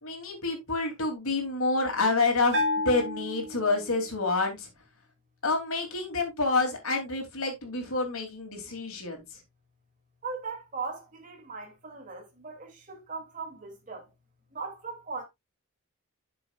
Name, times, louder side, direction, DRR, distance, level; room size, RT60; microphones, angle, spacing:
voice 1, 0.0-4.7 5.4-9.2, left 3 dB, 75° left, 3.2 m, -28 dB
Bell, 2.5-4.2, left 2 dB, 55° right, 2.3 m, -31 dB
voice 2, 10.2-14.1 14.5-15.2, right 4 dB, 35° right, 2.9 m, -39 dB
10.0 x 7.0 x 2.5 m
head